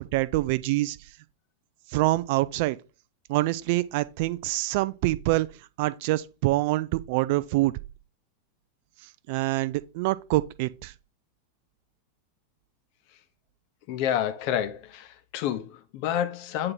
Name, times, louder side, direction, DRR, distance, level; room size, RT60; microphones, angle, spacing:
voice 1, 0.1-1.0 1.9-2.8 3.3-5.5 5.8-7.7 9.3-10.9, right 19 dB, 50° right, 0.3 m, -25 dB
voice 2, 13.9-16.7, left 10 dB, 45° left, 0.7 m, -29 dB
8.6 x 2.9 x 3.8 m
figure-of-eight pair, 90°, 0 cm